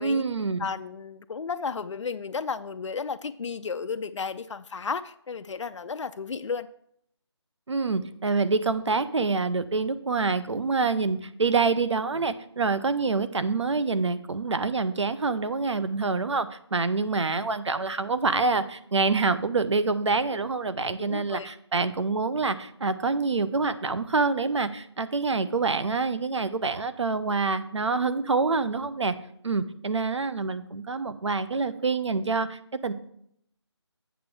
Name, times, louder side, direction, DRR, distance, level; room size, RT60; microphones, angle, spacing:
voice 1, 0.0-0.7 7.7-29.1 29.4-32.9, right 4 dB, 80° right, 12 dB, 0.7 m, -26 dB
voice 2, 0.6-6.7 20.8-21.5, left 5 dB, 85° left, 10 dB, 0.4 m, -33 dB
8.1 x 6.2 x 4.7 m, 0.70 s
figure-of-eight pair, 180°, 15 cm